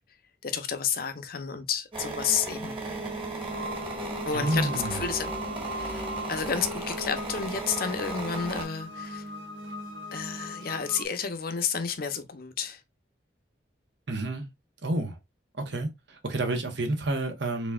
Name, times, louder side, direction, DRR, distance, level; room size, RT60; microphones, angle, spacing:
voice 1, 0.4-2.8 4.2-5.3 5.7-9.2 10.1-12.8, left 6 dB, 50° left, 0.6 m, -31 dB
sound 1, 1.9-8.6, right 1 dB, 30° right, 1.6 m, -36 dB
sound 2, 2.8-11.1, right 1 dB, 85° right, 1.2 m, -39 dB
voice 2, 4.3-5.0 14.1-14.4 14.8-15.2 15.6-15.9 16.2-17.7, right 2 dB, 65° right, 1.0 m, -29 dB
4.1 x 3.4 x 2.3 m
head